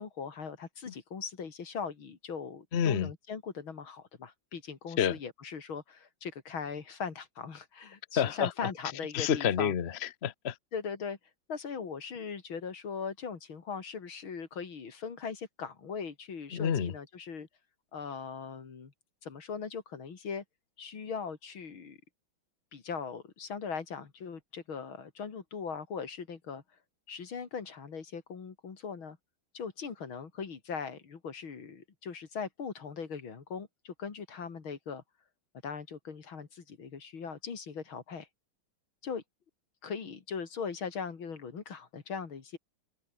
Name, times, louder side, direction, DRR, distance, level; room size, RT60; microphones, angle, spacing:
voice 1, 0.0-9.7 10.7-11.2 11.5-17.5 17.9-18.9 19.2-20.4 20.8-22.0 22.7-26.6 27.1-29.2 29.5-35.0 35.6-38.3 39.0-39.2 39.8-42.6, left 6 dB, 80° left, 3.4 m, -40 dB
voice 2, 2.7-3.1 5.0-5.2 8.2-8.7 9.1-10.6 16.5-16.9, left 8 dB, 45° left, 0.9 m, -29 dB
omnidirectional pair, 2.2 m